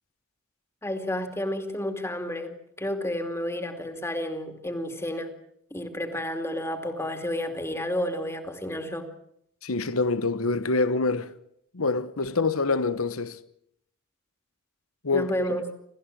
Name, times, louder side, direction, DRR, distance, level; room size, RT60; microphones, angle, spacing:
voice 1, 0.8-2.5 2.8-5.3 5.7-9.1 15.1-15.6, left 1 dB, 10° left, 2.7 m, -31 dB
voice 2, 9.6-11.4 11.7-13.4 15.0-15.6, left 3 dB, 80° left, 1.2 m, -26 dB
28.5 x 14.5 x 8.7 m
head